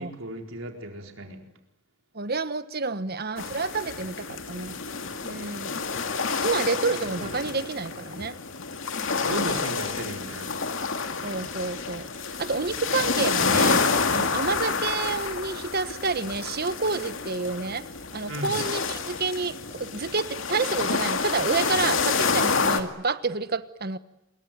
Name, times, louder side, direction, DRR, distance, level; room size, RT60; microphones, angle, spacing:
voice 1, 0.0-1.4 9.2-10.5 18.3-18.6, right 1 dB, 80° right, 4.4 m, -35 dB
voice 2, 2.1-4.8 5.2-5.8 6.4-8.4 11.2-12.1 12.4-17.8 18.1-24.0, right 4 dB, 50° right, 1.3 m, -29 dB
sound 1, 3.4-22.8, left 4 dB, 70° left, 2.4 m, -28 dB
27.0 x 22.5 x 9.3 m
head